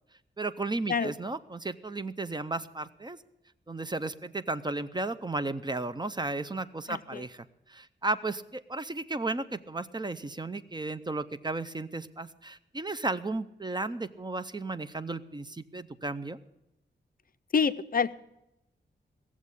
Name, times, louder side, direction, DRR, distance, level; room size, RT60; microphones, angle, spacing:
voice 1, 0.4-3.2 3.7-16.4, right 2 dB, 25° right, 13 dB, 0.5 m, -34 dB
voice 2, 6.9-7.2 17.5-18.1, left 6 dB, 50° left, 13 dB, 0.5 m, -27 dB
17.5 x 7.4 x 8.2 m, 0.87 s
wide cardioid pair, 105°, 19 cm